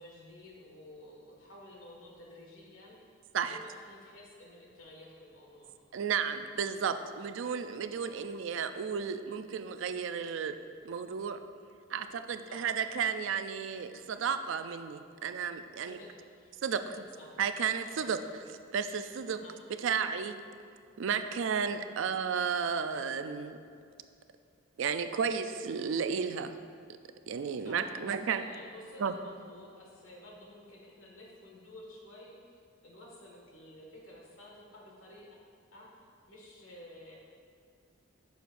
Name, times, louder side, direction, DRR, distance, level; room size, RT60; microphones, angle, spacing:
voice 1, 0.0-5.7 8.0-8.2 12.5-12.9 15.8-17.4 17.9-18.2 19.3-19.5 27.6-35.4 35.7-37.2, left 1 dB, 80° left, -2 dB, 1.7 m, -52 dB
voice 2, 5.9-10.6 10.8-11.4 11.9-16.0 16.6-16.8 17.4-18.2 18.7-19.4 19.8-20.4 21.0-23.6 24.8-26.6 27.3-28.4 29.0-29.1, right 6 dB, 65° right, 10 dB, 0.4 m, -33 dB
10.5 x 6.4 x 2.5 m, 2.3 s
head